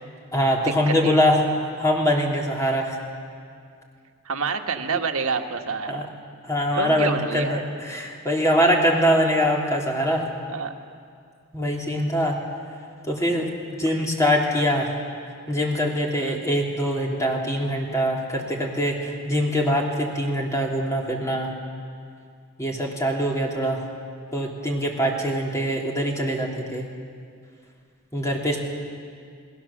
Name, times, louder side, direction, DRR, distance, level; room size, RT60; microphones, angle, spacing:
voice 1, 0.3-1.4 1.8-3.0 5.9-6.1 6.4-10.3 11.5-12.4 13.1-13.5 13.8-14.9 15.5-21.5 22.6-23.8 24.3-26.9 28.1-28.6, equal, 15° left, -1 dB, 3.1 m, -23 dB
voice 2, 0.9-1.2 4.2-6.1 6.8-7.7 10.5-10.7 16.2-16.4, right 5 dB, 75° right, 4 dB, 1.5 m, -28 dB
29.0 x 19.0 x 7.3 m, 2.2 s
head